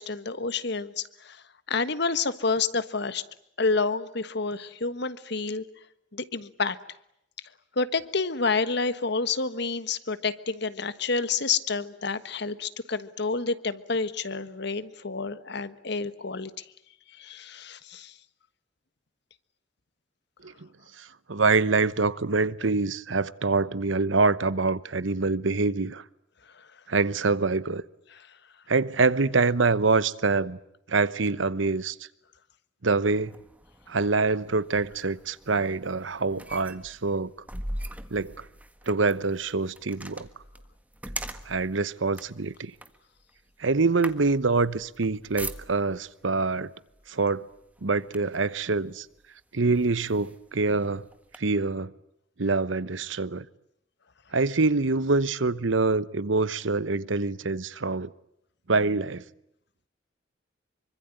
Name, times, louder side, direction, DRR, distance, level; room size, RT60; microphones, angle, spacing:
voice 1, 0.0-1.4 1.7-3.2 3.6-5.6 6.1-6.8 7.8-16.6 17.2-18.1, left 4 dB, 60° left, 1.4 m, -29 dB
voice 2, 21.0-26.0 26.9-27.8 28.7-30.6 30.9-32.0 32.8-33.4 33.9-37.3 38.1-38.3 38.9-40.3 41.5-42.7 43.6-46.7 47.1-47.5 47.8-49.1 49.5-51.1 51.4-51.9 52.4-53.5 54.3-58.1 58.7-59.2, right 3 dB, 80° right, 1.0 m, -25 dB
sound 1, 33.2-46.1 46.9-47.1 47.5-48.5 49.2-49.3 49.7-51.4, right 1 dB, 10° right, 1.7 m, -42 dB
26.0 x 24.5 x 9.2 m
head